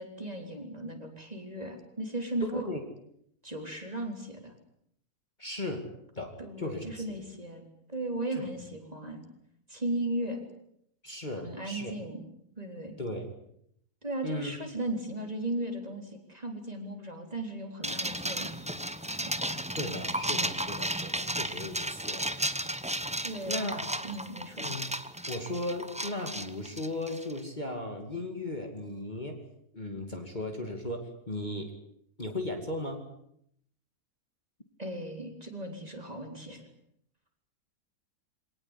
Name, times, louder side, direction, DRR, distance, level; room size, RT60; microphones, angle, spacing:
voice 1, 0.0-2.6 3.4-4.5 6.4-7.6 7.9-9.2 9.7-10.4 11.4-12.3 12.6-13.0 14.0-18.5 23.2-23.8 24.0-24.7 34.8-36.6, right 1 dB, 25° right, 4 dB, 4.1 m, -36 dB
voice 2, 2.4-2.8 5.4-5.8 6.2-7.0 8.3-8.5 11.0-11.9 13.0-13.3 14.2-14.6 19.8-22.3 23.5-23.9 24.6-24.9 25.3-29.4 29.7-31.7 32.2-33.1, left 1 dB, 30° left, 4 dB, 2.7 m, -36 dB
sound 1, 17.8-27.4, right 1 dB, 5° right, 0.8 m, -34 dB
25.0 x 18.5 x 9.9 m, 0.73 s
omnidirectional pair, 1.6 m